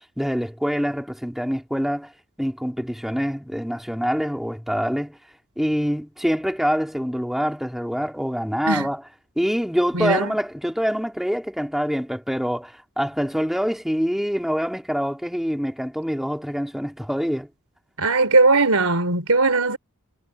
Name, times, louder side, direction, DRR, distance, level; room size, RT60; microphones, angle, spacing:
voice 1, 0.2-2.1 2.4-5.2 5.6-9.0 9.4-17.5, equal, ahead, 3.6 m, -25 dB
voice 2, 9.9-10.3 18.0-19.8, right 3 dB, 70° right, 4.4 m, -19 dB
head